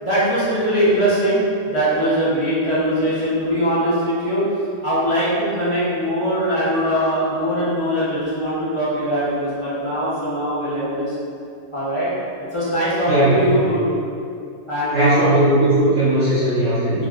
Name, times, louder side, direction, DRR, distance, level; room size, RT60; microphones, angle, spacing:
voice 1, 0.0-4.4 4.8-11.1 11.7-12.1 12.5-13.8 14.7-15.3 17.0-17.1, equal, 55° left, -12 dB, 0.3 m, -21 dB
sound 1, 6.7-8.0, right 1 dB, 75° right, 1.1 m, -35 dB
voice 2, 13.1-13.5 14.9-17.1, right 1 dB, 55° right, -12 dB, 0.7 m, -17 dB
3.3 x 2.3 x 2.3 m, 2.4 s
omnidirectional pair, 1.6 m